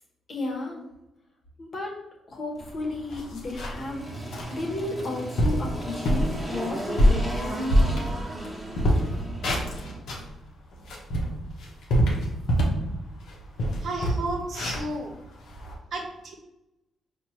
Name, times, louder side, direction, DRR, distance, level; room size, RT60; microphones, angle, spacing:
voice 1, 0.3-0.8 1.6-2.0 2.3-4.1 4.5-7.9, left 2 dB, 50° left, 0 dB, 1.1 m, -33 dB
Engine, 2.5-10.0, right 1 dB, 10° right, 1.2 m, -36 dB
sound 1, 2.6-2.7 3.1-3.9 4.3-4.5 5.0-5.1 5.4-5.7 6.0-6.3 6.8-8.5 8.7-10.3 10.7-12.9 13.2-13.3 13.6-15.7, equal, 75° left, 0.8 m, -24 dB
voice 2, 13.8-15.1 15.9-16.3, right 2 dB, 65° right, 3 dB, 0.8 m, -32 dB
4.5 x 2.4 x 2.9 m, 0.91 s
supercardioid pair, 65°, 0 cm